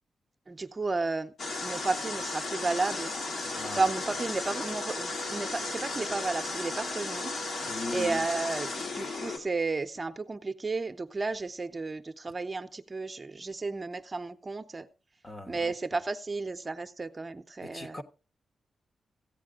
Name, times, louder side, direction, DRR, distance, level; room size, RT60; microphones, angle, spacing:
voice 1, 0.5-1.3 1.6-3.1 3.7-7.4 7.9-14.9 15.5-18.0, right 3 dB, 30° right, 0.7 m, -33 dB
sound 1, 1.4-9.4, left 3 dB, 70° left, 2.5 m, -35 dB
voice 2, 7.7-8.2 15.2-15.7 17.6-18.0, left 3 dB, 35° left, 1.2 m, -38 dB
15.0 x 8.5 x 3.7 m
cardioid pair, 85°, 0 cm